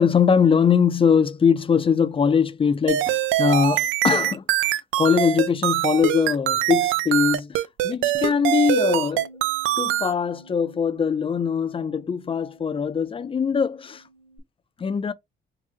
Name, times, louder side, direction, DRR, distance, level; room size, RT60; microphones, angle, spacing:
voice 1, 0.0-9.3 9.8-14.0 14.8-15.1, left 6 dB, 25° left, 0.4 m, -22 dB
sound 1, 2.9-10.1, right 13 dB, 85° right, 0.4 m, -23 dB
Bass guitar, 8.1-14.4, right 2 dB, 15° right, 0.8 m, -48 dB
3.7 x 2.0 x 3.8 m
cardioid pair, 90°, 20 cm